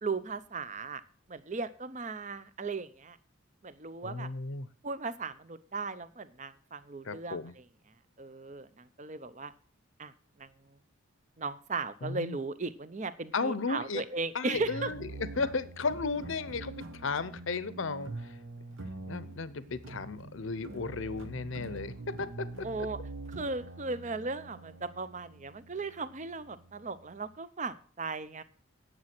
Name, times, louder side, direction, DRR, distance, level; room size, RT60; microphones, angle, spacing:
voice 1, 0.0-1.0 1.3-3.2 3.6-4.3 4.8-7.4 8.2-9.5 10.0-10.1 10.4-10.5 11.4-14.9 22.6-23.0 23.3-28.4, right 3 dB, 35° right, 14 dB, 0.6 m, -37 dB
voice 2, 4.0-4.7 7.0-7.5 12.0-12.4 13.3-14.0 14.3-15.1 15.4-18.4 19.0-22.7, left 4 dB, 65° left, 15 dB, 0.7 m, -35 dB
sound 1, 14.5-27.4, right 2 dB, 65° right, 1.1 m, -45 dB
10.0 x 7.4 x 6.0 m, 0.43 s
head